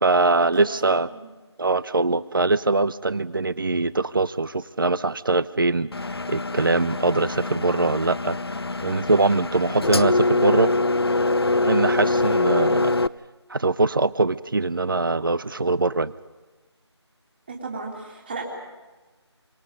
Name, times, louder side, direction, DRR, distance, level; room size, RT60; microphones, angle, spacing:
voice 1, 0.0-1.1 1.6-5.9 6.3-8.4 8.8-10.7 11.6-12.9 13.5-16.1, right 3 dB, 50° right, 17 dB, 0.7 m, -22 dB
voice 2, 0.5-1.3 17.5-18.4, right 3 dB, 20° right, 0 dB, 2.6 m, -35 dB
Engine, 5.9-13.1, left 2 dB, 60° left, 0.7 m, -24 dB
29.0 x 24.5 x 5.3 m, 1.2 s
figure-of-eight pair, 170°, 15 cm